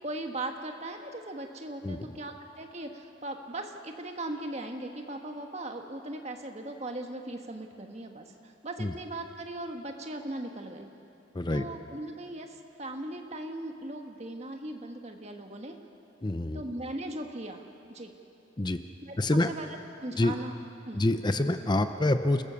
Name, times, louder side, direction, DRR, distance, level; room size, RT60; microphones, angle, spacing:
voice 1, 0.0-10.9 11.5-15.7 16.5-17.6 17.9-18.1 19.1-19.7 20.0-20.5 20.8-21.0, right 1 dB, 35° right, 4 dB, 1.5 m, -38 dB
voice 2, 1.8-2.2 8.8-8.9 11.3-11.6 16.2-16.6 18.6-18.8 19.2-19.5 20.2-20.3 20.9-22.4, left 1 dB, 20° left, 9 dB, 0.6 m, -26 dB
29.0 x 16.0 x 7.0 m, 2.8 s
head